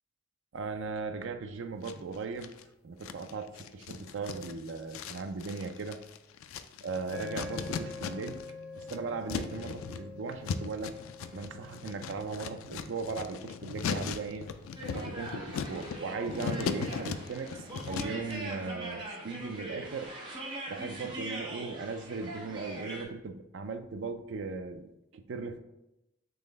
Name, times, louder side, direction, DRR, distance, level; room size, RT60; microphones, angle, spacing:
voice 1, 0.5-2.5 2.8-6.0 6.8-8.4 8.8-11.0 11.3-14.5 14.9-20.1 20.7-25.6, right 4 dB, 60° right, 8 dB, 0.4 m, -38 dB
sound 1, 1.8-2.6 3.0-8.5 8.7-18.3, left 6 dB, 75° left, 0.3 m, -38 dB
sound 2, 7.1-15.5, left 3 dB, 30° left, 1.2 m, -47 dB
sound 3, 14.8-23.0, right 1 dB, 25° right, 0.8 m, -42 dB
3.9 x 3.2 x 4.0 m, 0.90 s
head